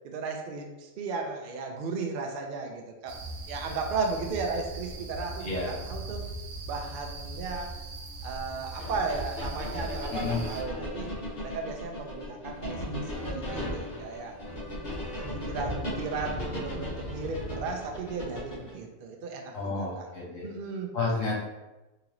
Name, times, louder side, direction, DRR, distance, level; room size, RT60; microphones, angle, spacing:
voice 1, 0.0-3.2 3.5-6.3 6.7-7.7 8.2-11.1 11.4-14.3 15.1-20.1 20.4-20.9, right 4 dB, 60° right, 2 dB, 0.6 m, -35 dB
sound 1, 3.1-10.6, right 2 dB, 75° right, 1.0 m, -40 dB
voice 2, 5.4-5.7 10.1-10.4 19.5-20.4 20.9-21.4, left 3 dB, 70° left, -4 dB, 1.4 m, -30 dB
sound 2, 8.8-18.8, equal, 45° left, 1.2 m, -36 dB
3.7 x 2.9 x 3.0 m, 1.1 s
omnidirectional pair, 1.3 m